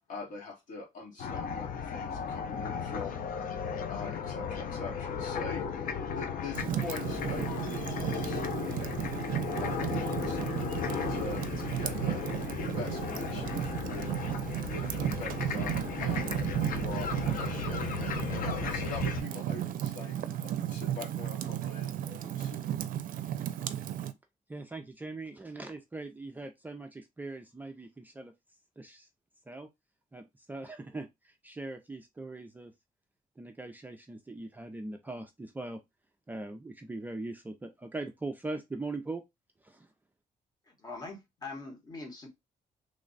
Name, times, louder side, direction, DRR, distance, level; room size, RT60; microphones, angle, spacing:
voice 1, 0.1-3.2 3.9-9.0 9.6-12.2 12.6-14.1 14.7-17.9 18.4-22.7, left 3 dB, 65° left, 1.5 m, -44 dB
sound 1, 1.2-19.2, left 6 dB, 85° left, 0.6 m, -35 dB
Fire, 6.5-24.1, right 11 dB, 80° right, 0.4 m, -34 dB
voice 2, 24.5-28.3 28.8-29.1 29.5-29.7 30.1-32.7 33.4-35.8 36.3-39.2 39.6-39.9, right 2 dB, 15° right, 0.3 m, -41 dB
voice 3, 40.7-42.3, left 3 dB, 30° left, 1.0 m, -43 dB
3.2 x 2.1 x 3.8 m
wide cardioid pair, 175°, 14 cm